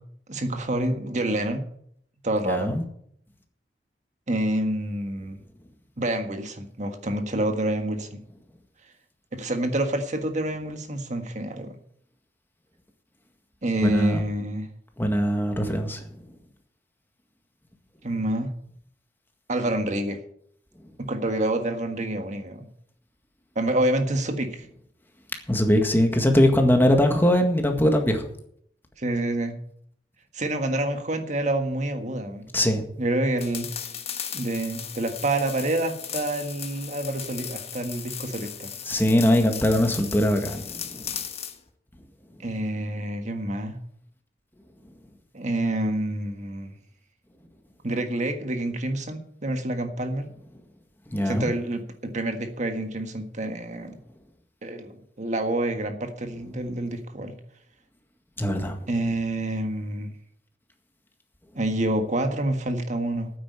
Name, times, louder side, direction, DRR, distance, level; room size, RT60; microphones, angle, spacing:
voice 1, 0.3-1.6 2.2-2.8 4.3-5.4 6.0-8.2 9.3-11.8 13.6-14.7 18.0-18.5 19.5-20.2 21.0-22.7 23.5-24.7 29.0-29.6 30.3-32.5 33.0-33.7 34.3-38.7 42.4-43.8 45.3-46.7 47.8-50.3 51.2-54.0 54.6-57.3 58.9-60.1 61.5-63.3, right 1 dB, 45° right, 6 dB, 1.6 m, -27 dB
voice 2, 2.5-2.8 13.8-14.2 15.0-16.0 25.5-28.3 32.5-32.8 38.8-41.2 51.1-51.5 58.4-58.8, left 1 dB, 15° left, 4 dB, 1.8 m, -21 dB
sound 1, 33.4-41.6, left 8 dB, 35° left, 1.3 m, -37 dB
9.4 x 8.7 x 8.4 m, 0.69 s
head